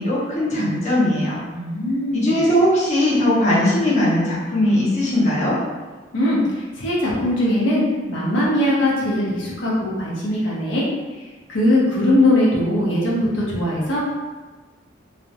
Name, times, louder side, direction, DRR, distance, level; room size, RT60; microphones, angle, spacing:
voice 1, 0.0-1.4 2.1-5.5, left 1 dB, 40° left, -7 dB, 0.7 m, -19 dB
voice 2, 1.5-2.4 6.1-10.8 11.1-14.0, left 1 dB, 80° left, -5 dB, 0.6 m, -20 dB
2.4 x 2.0 x 2.7 m, 1.3 s
head